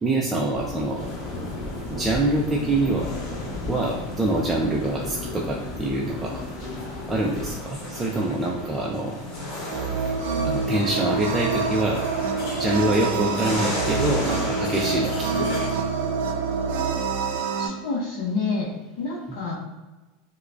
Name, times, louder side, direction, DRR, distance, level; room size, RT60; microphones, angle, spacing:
voice 1, 0.0-1.0 1.9-3.1 3.7-6.4 7.1-9.2 10.4-12.0 12.6-15.9 19.3-19.4, right 2 dB, 15° right, -2 dB, 0.4 m, -25 dB
sound 1, 0.5-7.5, left 2 dB, 30° left, 0.9 m, -35 dB
sound 2, 0.9-15.7, left 2 dB, 50° left, 1.1 m, -35 dB
sound 3, 9.7-17.7, right 5 dB, 75° right, 0.4 m, -26 dB
voice 2, 17.6-19.6, left 4 dB, 70° left, -5 dB, 0.7 m, -28 dB
4.6 x 2.2 x 2.2 m, 1.2 s
hypercardioid pair, 110°, 0 cm